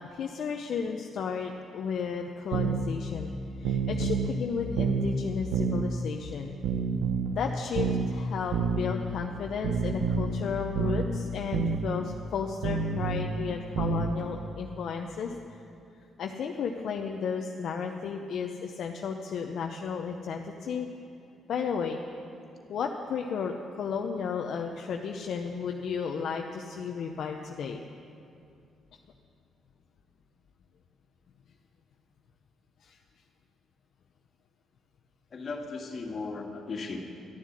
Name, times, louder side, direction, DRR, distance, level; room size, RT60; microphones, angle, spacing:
voice 1, 0.0-3.3 3.6-6.5 7.3-15.6 16.2-20.9 21.5-22.0 22.7-27.8 32.8-33.0, left 6 dB, 65° left, 2 dB, 0.7 m, -33 dB
sound 1, 2.5-2.8 3.6-4.4 4.8-5.1 5.5-5.9 6.6-7.4 7.8-8.1 8.5-8.9 9.6-10.3 10.8-11.1 11.5-11.8 12.6-13.3 13.8-14.1, right 5 dB, 80° right, 0.9 m, -28 dB
voice 2, 35.3-37.0, left 4 dB, 45° left, 1 dB, 2.0 m, -36 dB
12.5 x 7.3 x 9.8 m, 2.6 s
cardioid pair, 90°, 0 cm